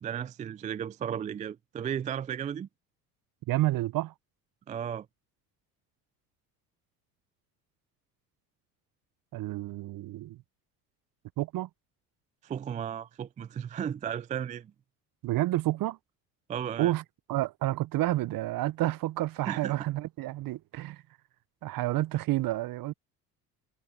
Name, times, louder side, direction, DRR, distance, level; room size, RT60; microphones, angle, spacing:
voice 1, 0.0-2.7 4.7-5.1 12.4-14.7 16.5-16.9 19.5-19.7, right 8 dB, 20° right, 0.3 m, -34 dB
voice 2, 3.5-4.1 9.3-10.4 11.4-11.7 15.2-16.0 16.8-17.0 17.3-21.0 21.6-22.9, right 16 dB, 50° right, 0.8 m, -29 dB
hypercardioid pair, 70°, 44 cm